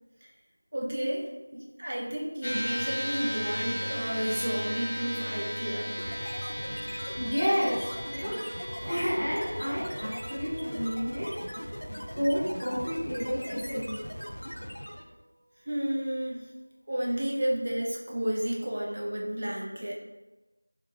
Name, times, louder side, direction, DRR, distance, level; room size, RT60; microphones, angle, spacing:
voice 1, 0.7-5.9 8.8-8.9 15.6-16.5 16.9-19.9, right 1 dB, 25° right, -2 dB, 0.6 m, -32 dB
sound 1, 2.4-14.9, equal, 25° left, 0.9 m, -38 dB
sound 2, 6.0-15.1, equal, 75° left, 0.6 m, -40 dB
voice 2, 7.2-8.4 8.9-11.3 12.2-14.1, equal, 5° right, -25 dB, 1.0 m, -30 dB
4.3 x 3.7 x 3.2 m, 1.1 s
figure-of-eight pair, 175°, 0 cm